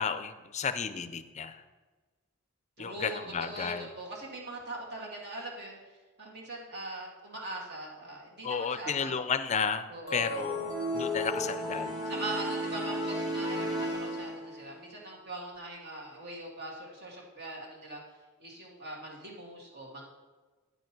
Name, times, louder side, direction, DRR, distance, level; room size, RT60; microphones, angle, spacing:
voice 1, 0.0-1.6 2.8-3.9 8.4-12.0, left 6 dB, 30° left, 12 dB, 0.4 m, -33 dB
voice 2, 2.8-5.8 6.2-9.1 9.9-10.4 12.1-18.0 18.4-20.0, right 2 dB, 50° right, -2 dB, 2.1 m, -41 dB
sound 1, 10.1-14.7, equal, 20° right, 1.4 m, -33 dB
9.4 x 5.3 x 5.9 m, 1.3 s
head